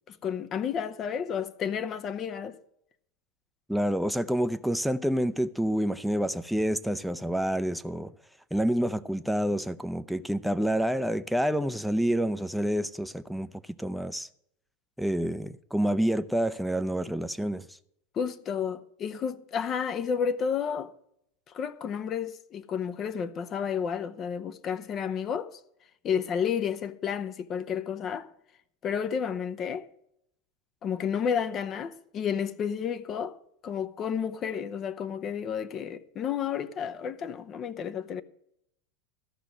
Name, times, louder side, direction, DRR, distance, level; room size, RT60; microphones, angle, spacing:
voice 1, 0.1-2.6 18.1-20.9 21.5-25.6 26.0-28.3 28.8-29.9 30.8-33.4 33.6-38.2, left 7 dB, 35° left, 0.7 m, -31 dB
voice 2, 3.7-8.1 8.5-13.5 13.8-14.3 15.0-17.7, equal, ahead, 0.6 m, -28 dB
13.5 x 6.0 x 7.6 m
hypercardioid pair, 85°, 0 cm